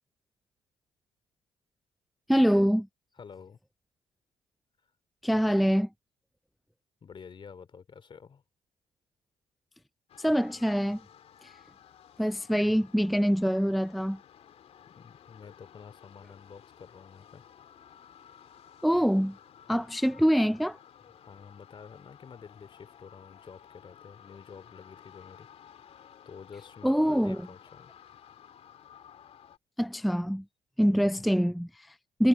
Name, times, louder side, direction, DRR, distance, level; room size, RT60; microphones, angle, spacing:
voice 1, 2.3-2.9 5.2-5.9 10.2-11.0 11.4-11.5 12.2-14.2 18.8-19.4 19.7-20.8 26.8-27.5 29.8-30.4 30.8-32.3, equal, ahead, 0.4 m, -25 dB
voice 2, 3.2-3.6 7.0-8.4 14.9-17.4 21.2-27.9 31.0-31.3, left 6 dB, 45° left, 3.0 m, -49 dB
sound 1, 10.1-29.6, left 9 dB, 65° left, 2.8 m, -55 dB
supercardioid pair, 65°, 12 cm